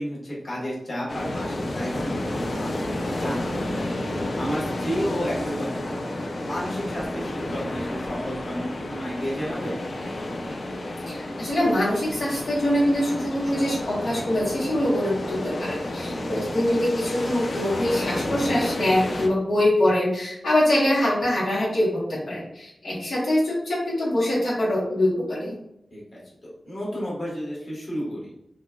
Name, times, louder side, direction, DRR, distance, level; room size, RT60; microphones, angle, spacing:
voice 1, 0.0-3.9 4.4-9.8 16.2-16.5 25.9-28.3, equal, 45° left, -7 dB, 1.4 m, -32 dB
sound 1, 1.1-19.3, left 1 dB, 65° left, 0.5 m, -31 dB
voice 2, 11.1-25.5, left 1 dB, 85° left, -7 dB, 1.1 m, -24 dB
4.0 x 2.3 x 2.3 m, 0.79 s
wide cardioid pair, 120°, 0 cm